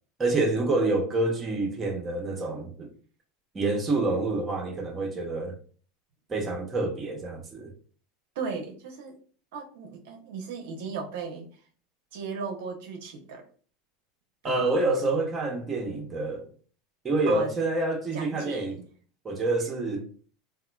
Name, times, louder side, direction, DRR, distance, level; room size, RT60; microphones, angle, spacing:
voice 1, 0.2-2.9 3.5-5.6 6.3-7.7 14.4-16.5 17.0-18.8 19.2-20.1, right 2 dB, 25° right, 0.7 m, -27 dB
voice 2, 8.4-9.2 9.5-11.5 12.1-13.4 14.4-15.0 17.3-17.5 18.1-18.9, right 5 dB, 70° right, 0.5 m, -36 dB
2.8 x 2.4 x 2.3 m
hypercardioid pair, 90°, 0 cm